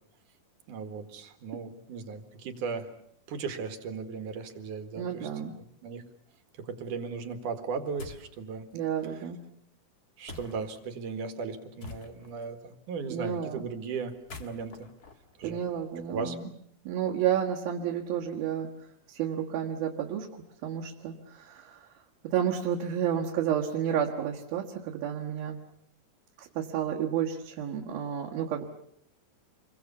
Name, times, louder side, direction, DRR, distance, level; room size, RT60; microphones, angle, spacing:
voice 1, 0.7-2.9 3.3-5.3 5.8-6.0 6.6-8.7 9.1-9.2 10.2-14.9 15.4-15.6 16.1-16.4, right 5 dB, 65° right, 8 dB, 3.1 m, -37 dB
voice 2, 5.0-5.6 8.7-9.4 13.1-13.6 15.4-16.5 16.9-18.7 19.1-21.9 22.2-25.6 26.4-28.7, right 9 dB, 80° right, -2 dB, 3.5 m, -31 dB
sound 1, 8.0-8.4 10.3-10.8 11.8-12.4 14.1-16.1, left 3 dB, 40° left, 1.4 m, -46 dB
27.5 x 22.5 x 7.1 m, 0.67 s
omnidirectional pair, 4.2 m